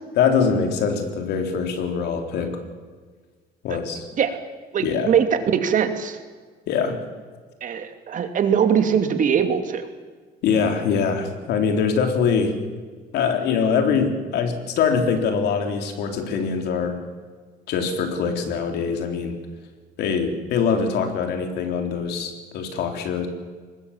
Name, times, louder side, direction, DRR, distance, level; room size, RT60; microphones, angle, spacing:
voice 1, 0.2-2.6 3.6-4.1 4.8-5.1 6.7-7.0 10.4-12.6 13.1-17.0 17.7-19.4 20.0-23.3, left 6 dB, 75° left, 5 dB, 3.8 m, -23 dB
voice 2, 4.7-6.2 7.6-9.9, right 7 dB, 50° right, 7 dB, 2.6 m, -21 dB
23.5 x 20.0 x 7.3 m, 1.5 s
cardioid pair, 110°, 17 cm